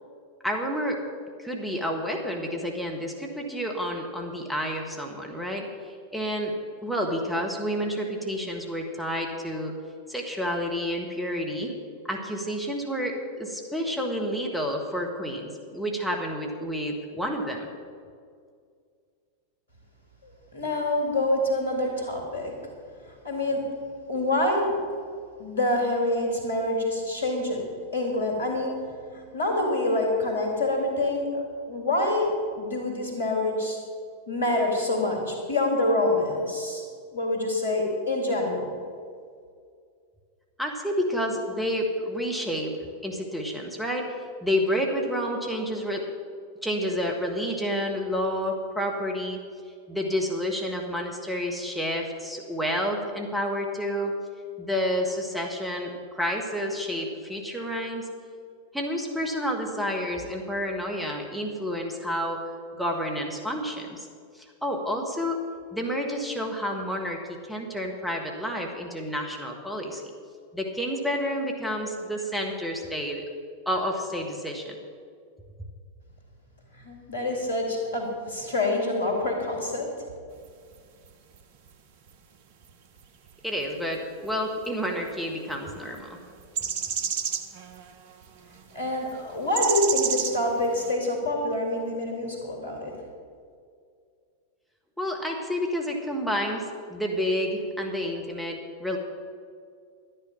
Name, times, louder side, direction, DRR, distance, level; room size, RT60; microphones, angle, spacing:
voice 1, 0.4-1.0 1.4-6.5 6.8-9.7 10.1-11.7 12.1-17.7 40.6-42.7 43.0-46.0 46.6-49.4 49.9-54.1 54.6-58.1 58.7-62.4 62.7-64.1 64.4-65.4 65.7-70.0 70.5-73.2 73.7-74.8 83.4-86.2 95.0-99.0, equal, ahead, 0 dB, 1.7 m, -29 dB
voice 2, 20.2-22.5 23.2-23.6 24.1-24.7 25.4-27.6 27.9-28.7 29.1-31.4 31.7-32.3 32.6-33.8 34.3-36.8 37.1-38.8 76.7-79.9 88.7-92.9, left 1 dB, 75° left, 1 dB, 2.9 m, -26 dB
sound 1, 80.4-80.7 81.0-81.4 81.7-81.8 82.6-82.7 83.0-83.1 84.2-84.3 84.6-84.7 85.1-85.2 85.5-86.0 86.4-88.2 88.6-88.7 89.5-90.9, right 7 dB, 50° right, 0.9 m, -29 dB
12.0 x 10.0 x 5.8 m, 2.2 s
figure-of-eight pair, 90°, 0 cm